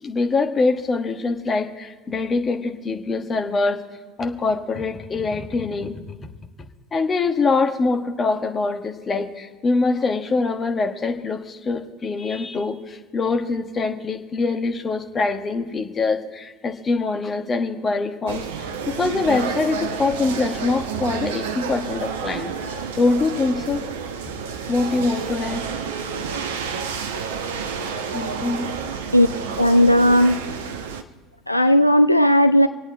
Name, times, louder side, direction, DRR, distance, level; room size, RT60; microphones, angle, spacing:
voice 1, 0.0-3.8 4.2-6.2 6.9-22.5 23.0-23.9 24.7-25.7 28.1-28.7, left 3 dB, 25° left, 5 dB, 1.4 m, -24 dB
sound 1, 18.3-31.0, right 6 dB, 65° right, 0.9 m, -30 dB
voice 2, 29.6-30.4 31.5-32.7, equal, 90° left, 9 dB, 0.3 m, -15 dB
26.5 x 8.9 x 4.0 m, 1.4 s
figure-of-eight pair, 70°, 0 cm